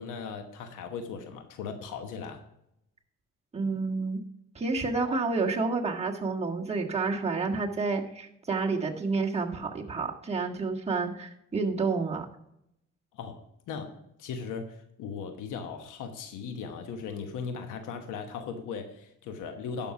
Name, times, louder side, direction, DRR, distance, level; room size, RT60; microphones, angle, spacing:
voice 1, 0.0-2.4 13.1-19.9, left 5 dB, 85° left, 7 dB, 1.1 m, -38 dB
voice 2, 3.5-4.2 4.6-12.3, right 4 dB, 20° right, -1 dB, 1.7 m, -29 dB
11.0 x 5.9 x 4.9 m, 0.78 s
cardioid pair, 90°, 30 cm